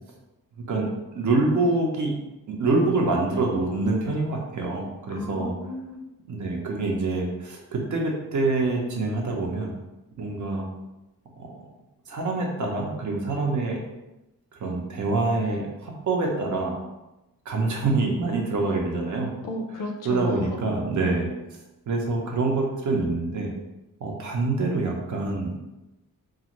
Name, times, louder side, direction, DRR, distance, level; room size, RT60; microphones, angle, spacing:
voice 1, 0.7-2.1 2.5-5.5 6.3-9.7 10.2-10.7 11.4-11.7 12.1-13.8 14.5-16.8 17.5-19.3 20.0-21.3 21.9-23.5 24.0-25.5, right 3 dB, 55° right, 0 dB, 0.6 m, -26 dB
voice 2, 5.1-6.0 19.4-20.6, left 2 dB, 65° left, 3 dB, 0.5 m, -34 dB
2.5 x 2.4 x 2.9 m, 0.98 s
wide cardioid pair, 155°, 35 cm